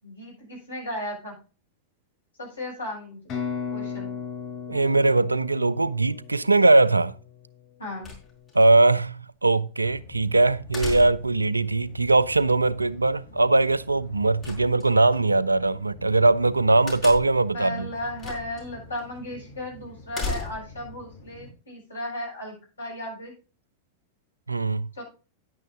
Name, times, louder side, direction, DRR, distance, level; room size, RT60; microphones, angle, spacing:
voice 1, 0.0-1.3 2.4-3.2 3.7-4.1 7.8-8.1 17.5-23.3 24.9-25.0, left 1 dB, 75° left, 6.8 m, -35 dB
sound 1, 3.3-7.1, left 6 dB, 35° left, 4.8 m, -35 dB
voice 2, 4.7-7.1 8.5-17.9 24.5-24.9, right 2 dB, 80° right, 0.4 m, -21 dB
sound 2, 8.0-8.7 10.7-11.4 14.4-15.2 16.9-17.5 18.2-18.6 19.0-19.1 20.1-20.8, left 3 dB, 20° left, 5.3 m, -35 dB
sound 3, 9.8-21.5, left 3 dB, 60° left, 2.6 m, -47 dB
10.5 x 9.1 x 3.6 m
figure-of-eight pair, 90°, 0 cm